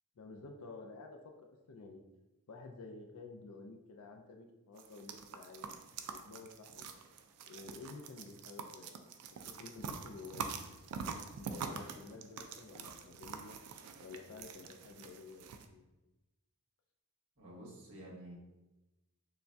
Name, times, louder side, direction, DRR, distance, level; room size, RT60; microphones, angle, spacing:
voice 1, 0.2-2.0 2.5-5.7 6.1-6.9 7.5-9.1 9.5-13.6 14.0-15.8, left 3 dB, 70° left, 3 dB, 0.4 m, -51 dB
sound 1, 4.8-15.7, right 5 dB, 90° right, 0.4 m, -46 dB
voice 2, 17.4-18.3, right 1 dB, 65° right, -6 dB, 1.4 m, -50 dB
6.7 x 2.2 x 2.6 m, 1.0 s
head